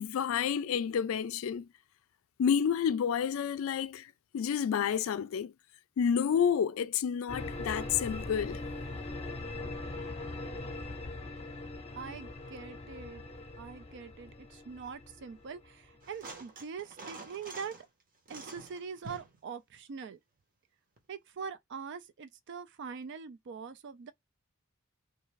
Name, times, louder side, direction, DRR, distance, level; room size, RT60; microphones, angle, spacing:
voice 1, 0.0-1.7 2.4-5.5 6.0-8.6, left 7 dB, 70° left, 0.3 m, -30 dB
sound 1, 7.3-16.1, left 2 dB, 30° left, 0.7 m, -41 dB
voice 2, 12.0-13.2 13.6-17.8 18.3-20.2 21.1-24.1, right 6 dB, 55° right, 0.4 m, -43 dB
sound 2, 16.0-17.9 18.3-19.4 21.0-21.1, right 3 dB, 40° right, 0.8 m, -47 dB
2.5 x 2.3 x 3.1 m
head